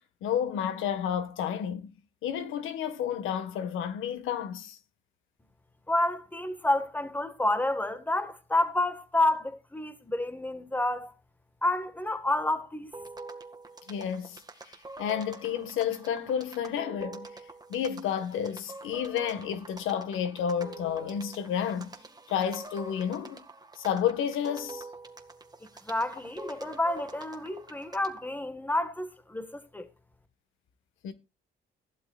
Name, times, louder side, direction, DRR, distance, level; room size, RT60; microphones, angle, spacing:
voice 1, 0.2-1.9 2.2-4.8 13.9-17.3 17.7-21.9 22.3-23.4 23.8-24.9 31.0-31.1, left 8 dB, 85° left, 1.7 m, -31 dB
voice 2, 5.9-11.1 11.6-12.9 25.9-29.9, left 1 dB, 10° left, 1.6 m, -29 dB
sound 1, 12.9-28.3, right 2 dB, 20° right, 1.8 m, -46 dB
15.5 x 11.5 x 2.5 m
cardioid pair, 90°, 20 cm